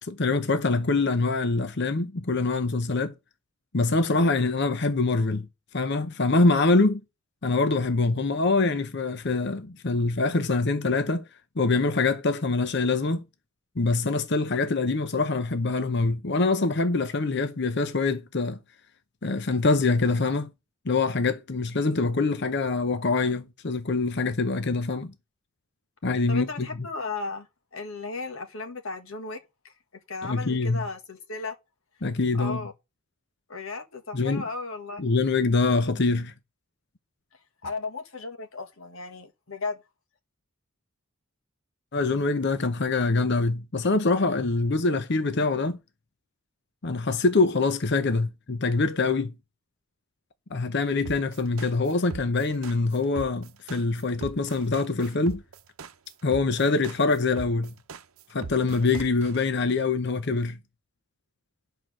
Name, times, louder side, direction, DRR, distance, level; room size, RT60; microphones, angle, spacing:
voice 1, 0.0-3.1 3.7-5.5 5.7-7.0 7.4-11.2 11.6-13.2 13.8-18.6 19.2-20.5 20.8-25.1 26.0-26.9 30.2-30.9 32.0-32.7 34.1-34.4 35.0-36.3 41.9-45.8 46.8-49.3 50.5-55.4 56.2-57.7 58.3-60.6, left 3 dB, 50° left, 0.7 m, -24 dB
voice 2, 26.3-27.5 27.7-29.4 30.1-31.6 32.4-32.7 33.5-35.0 37.6-39.8, left 3 dB, 65° left, 1.5 m, -35 dB
sound 1, 51.1-59.4, right 4 dB, 75° right, 0.8 m, -40 dB
10.5 x 4.6 x 6.4 m
head